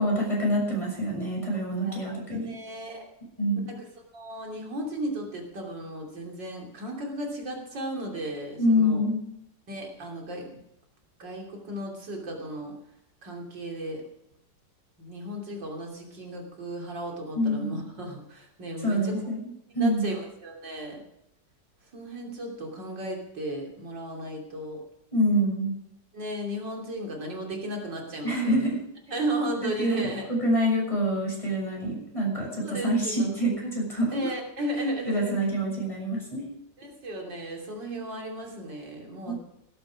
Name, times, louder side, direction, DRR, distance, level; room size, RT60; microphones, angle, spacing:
voice 1, 0.0-2.5 3.4-3.7 8.6-9.2 17.3-17.8 18.8-19.5 19.7-20.1 25.1-25.7 28.2-28.8 29.6-34.1 35.1-36.5 39.3-39.4, equal, 15° left, -2 dB, 6.7 m, -26 dB
voice 2, 1.8-3.0 3.7-3.8 4.1-9.0 9.7-10.6 11.2-12.7 13.2-14.0 15.0-19.1 19.8-21.0 21.9-24.8 26.1-28.7 29.1-30.3 32.6-33.1 34.1-35.4 36.8-39.3, right 1 dB, 85° right, 0 dB, 3.7 m, -35 dB
17.5 x 9.8 x 6.2 m, 0.80 s
omnidirectional pair, 1.9 m